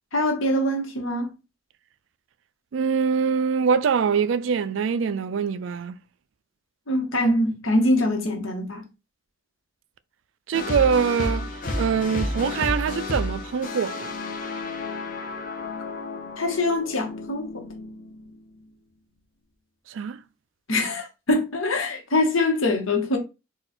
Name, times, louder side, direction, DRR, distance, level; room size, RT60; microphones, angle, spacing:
voice 1, 0.1-1.3 6.9-8.8 16.4-17.5 20.7-23.2, left 1 dB, 75° left, 1.3 m, -23 dB
voice 2, 2.7-6.0 10.5-14.2 19.9-20.2, right 6 dB, 65° right, 0.4 m, -24 dB
sound 1, 10.5-18.7, left 2 dB, 40° left, 0.9 m, -31 dB
4.3 x 2.5 x 4.2 m
head